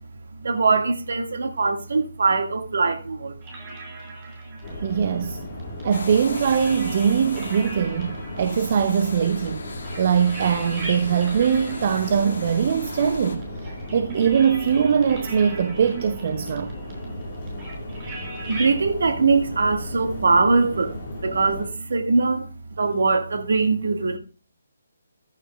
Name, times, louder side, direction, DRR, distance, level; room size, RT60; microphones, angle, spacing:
voice 1, 0.3-3.4 4.5-4.6 18.5-22.5 22.8-24.2, right 4 dB, 55° right, 1.8 m, -22 dB
sound 1, 3.4-18.8, right 2 dB, 25° right, 5.0 m, -41 dB
sound 2, 4.6-21.7, left 1 dB, 35° left, 4.6 m, -36 dB
voice 2, 4.8-5.4 5.8-9.7 10.0-16.7, right 7 dB, 40° right, 0.8 m, -22 dB
sound 3, 5.9-13.4, left 3 dB, 55° left, 2.2 m, -38 dB
14.5 x 13.5 x 2.4 m
figure-of-eight pair, 140°, 0 cm